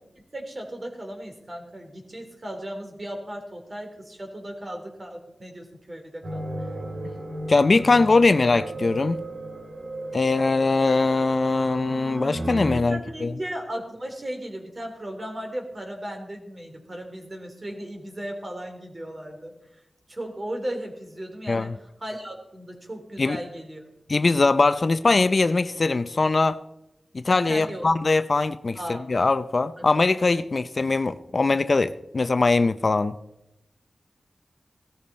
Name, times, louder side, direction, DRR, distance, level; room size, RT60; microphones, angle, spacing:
voice 1, 0.2-6.5 12.7-19.5 20.1-23.8 27.5-27.9 28.8-29.1 29.8-29.9, right 1 dB, 35° right, 3.4 m, -36 dB
sound 1, 6.2-12.8, right 1 dB, 85° right, 2.8 m, -34 dB
voice 2, 7.5-9.2 10.1-13.3 21.5-21.7 23.2-23.4 24.1-26.6 27.1-33.1, left 3 dB, 50° left, 0.5 m, -21 dB
17.0 x 13.5 x 4.3 m
wide cardioid pair, 70°, 0 cm